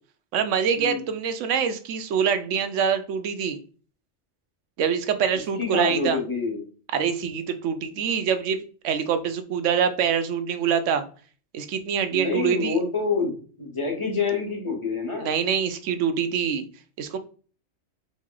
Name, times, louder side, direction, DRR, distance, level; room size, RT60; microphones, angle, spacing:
voice 1, 0.3-3.6 4.8-6.2 6.9-11.1 11.5-12.8 15.2-16.7 17.0-17.2, right 7 dB, 80° right, 10 dB, 0.9 m, -25 dB
voice 2, 5.6-6.7 12.1-15.3, left 4 dB, 25° left, 0 dB, 1.1 m, -27 dB
3.5 x 3.2 x 3.7 m, 0.40 s
omnidirectional pair, 1.3 m